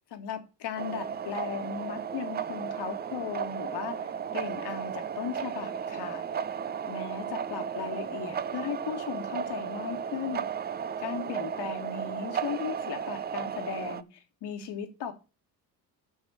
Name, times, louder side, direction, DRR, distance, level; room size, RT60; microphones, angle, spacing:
voice 1, 0.1-6.2 6.9-10.5 11.0-15.1, left 7 dB, 55° left, 1.8 m, -37 dB
sound 1, 0.8-14.0, right 7 dB, 20° right, 0.4 m, -34 dB
6.4 x 6.0 x 6.1 m
hypercardioid pair, 60°, 48 cm